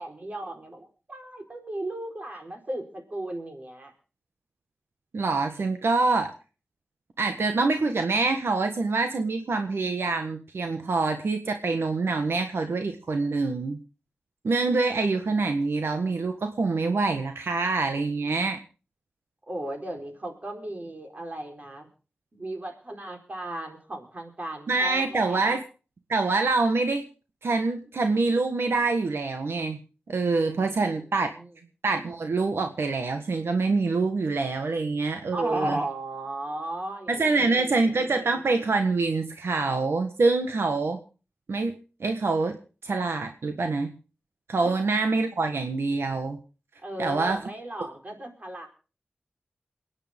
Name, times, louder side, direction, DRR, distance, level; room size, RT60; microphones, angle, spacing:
voice 1, 0.0-3.9 19.5-21.9 22.3-25.4 30.5-30.9 31.3-31.5 35.3-38.1 44.6-44.7 46.8-48.7, right 1 dB, 40° right, 3 dB, 4.3 m, -36 dB
voice 2, 5.1-6.3 7.2-13.8 14.4-18.6 24.7-25.6 26.1-27.0 27.4-29.8 30.1-31.3 31.8-35.8 37.1-41.0 41.5-41.7 42.0-42.6 42.8-43.9 44.5-46.4 47.0-47.4, right 3 dB, 85° right, 5 dB, 1.5 m, -25 dB
28.5 x 9.8 x 3.7 m, 0.36 s
wide cardioid pair, 90°, 4 cm